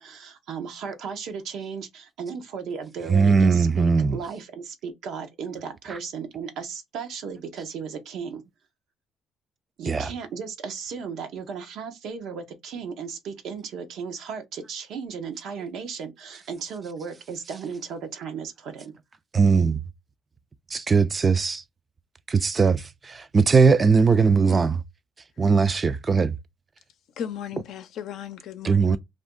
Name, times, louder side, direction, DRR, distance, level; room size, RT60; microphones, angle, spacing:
voice 1, 0.0-8.4 9.8-18.9, right 6 dB, 75° right, 0.7 m, -35 dB
voice 2, 3.1-4.2 9.9-10.1 19.3-19.8 20.7-21.6 22.3-24.8 25.4-26.3 28.6-29.0, right 5 dB, 35° right, 0.4 m, -20 dB
voice 3, 27.2-29.0, left 9 dB, 75° left, 0.5 m, -36 dB
2.5 x 2.1 x 3.6 m
supercardioid pair, 75°, 0 cm